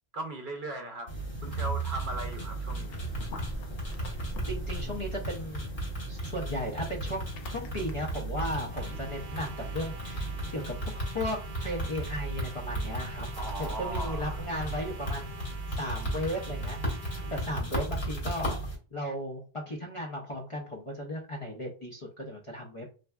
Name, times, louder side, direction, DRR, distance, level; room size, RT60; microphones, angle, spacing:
voice 1, 0.1-1.1 1.4-3.0 13.4-14.4, right 1 dB, 60° right, 0.7 m, -38 dB
sound 1, 1.1-18.7, right 1 dB, 55° left, 1.2 m, -35 dB
sound 2, 2.1-10.9, left 3 dB, 70° left, 0.8 m, -49 dB
voice 2, 4.5-5.7 6.1-13.3 13.6-15.4 15.8-17.0 17.3-22.9, equal, 40° left, 0.5 m, -36 dB
sound 3, 8.6-17.5, right 5 dB, 90° right, 0.8 m, -48 dB
3.2 x 2.5 x 2.2 m
omnidirectional pair, 1.0 m